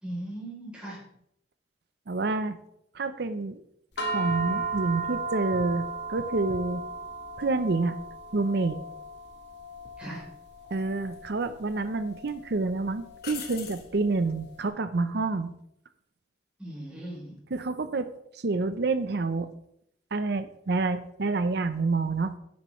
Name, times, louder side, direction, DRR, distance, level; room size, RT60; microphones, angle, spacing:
voice 1, 0.0-1.0 10.0-10.2 16.6-17.4, right 1 dB, 5° right, -6 dB, 3.3 m, -38 dB
voice 2, 2.1-2.6 2.9-3.6 4.1-6.8 7.4-8.0 8.3-8.8 10.7-15.5 17.5-18.1 18.4-19.5 20.1-22.4, right 3 dB, 65° right, 11 dB, 0.6 m, -28 dB
sound 1, 4.0-14.5, right 3 dB, 85° left, 1.8 m, -36 dB
sound 2, 9.8-10.0 11.1-11.8 12.2-12.3 13.2-13.9 17.0-17.4, left 7 dB, 60° left, 1.1 m, -42 dB
10.0 x 7.3 x 3.1 m, 0.72 s
head